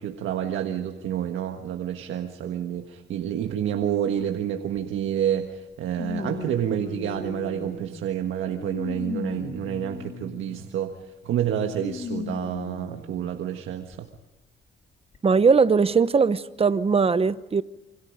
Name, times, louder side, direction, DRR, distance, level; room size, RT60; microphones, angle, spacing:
voice 1, 0.0-11.0 11.2-14.1, right 10 dB, 80° right, 1.5 m, -29 dB
sound 1, 4.7-4.8 5.9-8.0 8.6-10.6 11.8-13.2 13.9-14.0 15.1-15.2, left 4 dB, 40° left, 3.1 m, -36 dB
voice 2, 15.2-17.6, right 5 dB, 30° right, 0.9 m, -20 dB
27.5 x 25.5 x 5.1 m
cardioid pair, 90°, 20 cm